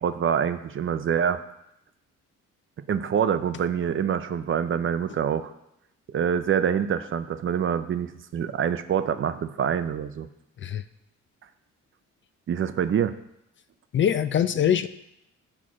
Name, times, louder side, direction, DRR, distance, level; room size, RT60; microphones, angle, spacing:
voice 1, 0.0-1.4 2.9-5.5 6.1-10.3 12.5-13.1, right 8 dB, 45° right, 11 dB, 0.5 m, -25 dB
voice 2, 13.9-14.9, left 9 dB, 40° left, 12 dB, 0.4 m, -23 dB
6.4 x 4.4 x 6.1 m, 0.81 s
cardioid pair, 90°, 30 cm